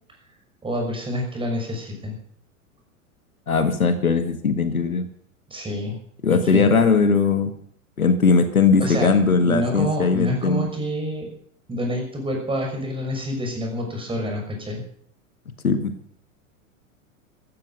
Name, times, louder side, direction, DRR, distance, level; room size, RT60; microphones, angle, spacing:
voice 1, 0.6-2.2 5.5-6.0 6.5-6.7 8.8-9.1 9.4-11.3 11.7-14.8, equal, 10° right, 2 dB, 6.3 m, -27 dB
voice 2, 3.5-5.1 6.2-7.5 8.0-10.7 15.6-15.9, left 5 dB, 80° left, 9 dB, 1.8 m, -19 dB
14.5 x 13.0 x 6.8 m, 0.62 s
figure-of-eight pair, 95°, 42 cm